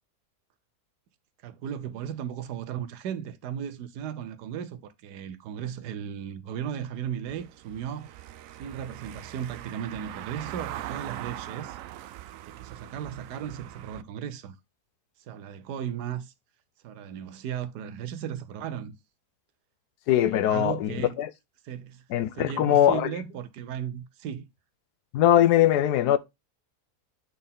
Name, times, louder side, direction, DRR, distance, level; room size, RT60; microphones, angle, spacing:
voice 1, 1.4-8.2 8.6-11.8 12.5-14.6 15.3-16.3 16.8-19.0 20.2-21.1 21.6-22.0 22.3-24.5, right 9 dB, 85° right, 1.3 m, -36 dB
Car passing by / Engine, 7.3-14.0, right 13 dB, 70° right, 0.8 m, -41 dB
voice 2, 20.1-21.3 22.1-23.1 25.1-26.2, left 11 dB, 85° left, 1.3 m, -21 dB
7.8 x 4.3 x 3.6 m
omnidirectional pair, 1.7 m